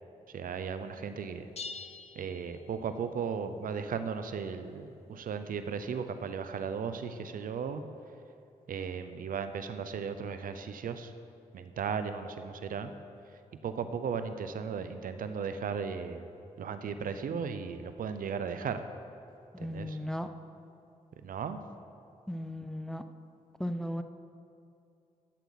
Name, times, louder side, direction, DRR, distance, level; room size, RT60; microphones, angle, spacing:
voice 1, 0.3-1.5 2.2-7.8 8.7-11.1 11.5-12.9 13.6-16.3 16.6-18.8 19.6-20.0 21.2-21.6, right 6 dB, 70° right, 10 dB, 0.6 m, -36 dB
sound 1, 1.6-3.1, left 4 dB, 45° left, 0.7 m, -45 dB
voice 2, 19.5-20.3 22.3-23.0 23.6-24.0, equal, 5° left, 9 dB, 0.6 m, -36 dB
13.0 x 8.1 x 4.1 m, 2.6 s
cardioid pair, 55°, 15 cm